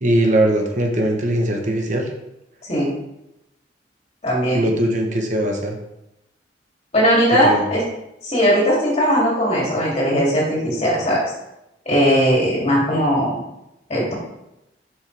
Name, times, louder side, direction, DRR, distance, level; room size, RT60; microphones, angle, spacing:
voice 1, 0.0-2.1 4.5-5.8 7.4-7.6, right 1 dB, 45° right, 1 dB, 1.1 m, -20 dB
voice 2, 4.2-4.6 6.9-7.8 8.2-11.2 11.9-13.4 13.9-14.1, equal, 40° left, -5 dB, 3.0 m, -18 dB
8.1 x 6.4 x 3.4 m, 0.89 s
head